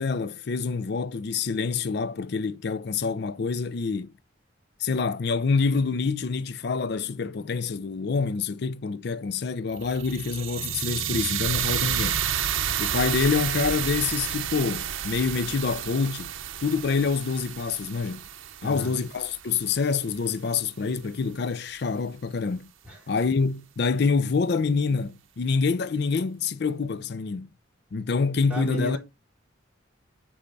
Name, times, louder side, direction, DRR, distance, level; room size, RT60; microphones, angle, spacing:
voice 1, 0.0-4.1 4.8-12.2 12.8-16.3 16.6-18.3 18.6-22.7 23.1-27.5 27.9-29.0, left 5 dB, 55° left, 0.4 m, -26 dB
sound 1, 9.7-19.9, right 9 dB, 80° right, 0.7 m, -30 dB
voice 2, 18.6-18.9 22.8-23.0 28.5-29.0, equal, 5° right, 3.0 m, -32 dB
8.4 x 3.5 x 4.0 m
head